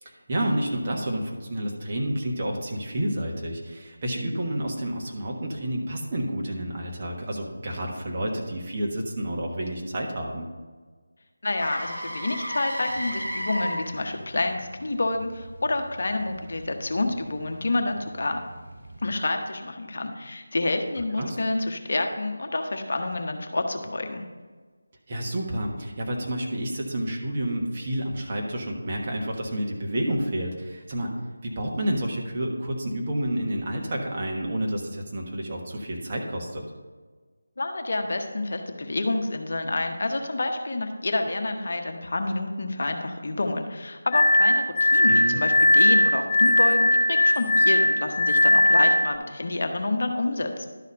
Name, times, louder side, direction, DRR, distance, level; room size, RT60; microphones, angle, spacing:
voice 1, 0.0-10.5 21.2-21.4 25.1-31.1 31.4-36.6 45.1-45.4, right 1 dB, 35° right, -1 dB, 1.3 m, -29 dB
voice 2, 11.4-18.4 19.0-24.2 37.6-50.7, left 2 dB, 55° left, 5 dB, 0.9 m, -28 dB
Motor vehicle (road), 11.6-19.5 23.8-24.0, equal, 65° right, 2.0 m, -37 dB
Glass, 44.1-49.2, left 1 dB, 15° left, 0.6 m, -19 dB
11.5 x 4.1 x 5.3 m, 1.4 s
figure-of-eight pair, 165°, 0 cm